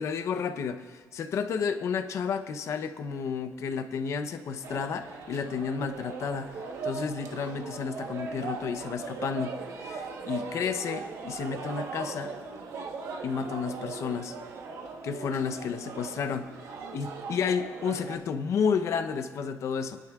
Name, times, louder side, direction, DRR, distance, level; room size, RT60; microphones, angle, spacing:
voice 1, 0.0-6.5 6.8-9.6 9.8-12.3 13.2-14.4 15.0-16.5 16.9-20.0, left 6 dB, 65° left, 9 dB, 0.7 m, -31 dB
sound 1, 4.6-18.2, right 4 dB, 75° right, 1.2 m, -39 dB
24.0 x 11.0 x 2.4 m, 1.5 s
cardioid pair, 155°, 5 cm